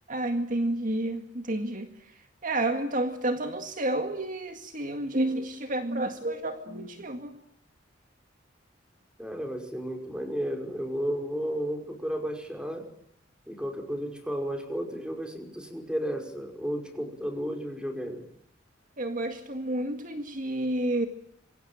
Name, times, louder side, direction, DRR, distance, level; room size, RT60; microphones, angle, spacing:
voice 1, 0.1-1.9 2.4-7.3 19.0-21.1, right 1 dB, 45° right, 6 dB, 2.1 m, -30 dB
voice 2, 9.2-12.9 13.5-18.2, equal, 5° right, 4 dB, 5.4 m, -33 dB
27.0 x 23.5 x 9.0 m, 0.69 s
head